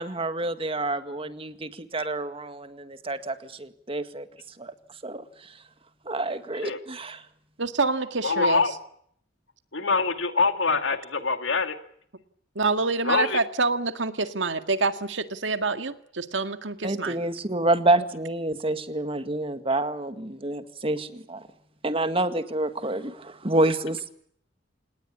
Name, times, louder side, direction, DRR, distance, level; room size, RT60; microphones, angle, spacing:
voice 1, 0.0-4.3 4.6-4.7 5.0-5.2 6.1-7.2 16.8-21.4 21.8-24.1, right 2 dB, 30° right, 10 dB, 1.9 m, -28 dB
voice 2, 7.6-8.8 12.6-17.2, right 3 dB, 80° right, 9 dB, 2.0 m, -27 dB
voice 3, 8.2-8.7 9.7-11.8 13.0-13.4, left 4 dB, 90° left, 8 dB, 2.5 m, -24 dB
28.0 x 19.0 x 8.6 m, 0.67 s
head